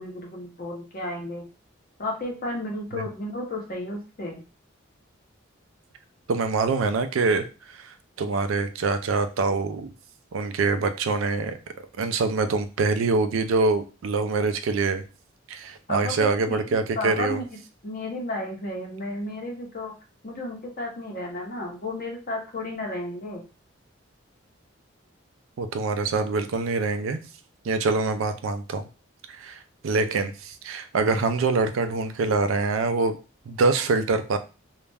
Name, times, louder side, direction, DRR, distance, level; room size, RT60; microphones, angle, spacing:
voice 1, 0.0-1.4 2.0-4.4 15.9-17.6 17.8-19.9 20.2-23.4, left 1 dB, 45° left, -1 dB, 0.8 m, -33 dB
voice 2, 6.3-7.4 7.7-7.9 8.2-9.9 10.3-11.6 12.0-15.0 15.5-17.4 25.6-27.2 27.6-28.8 29.3-33.2 33.5-34.4, right 3 dB, 80° right, 9 dB, 0.4 m, -25 dB
2.3 x 2.1 x 3.3 m, 0.33 s
head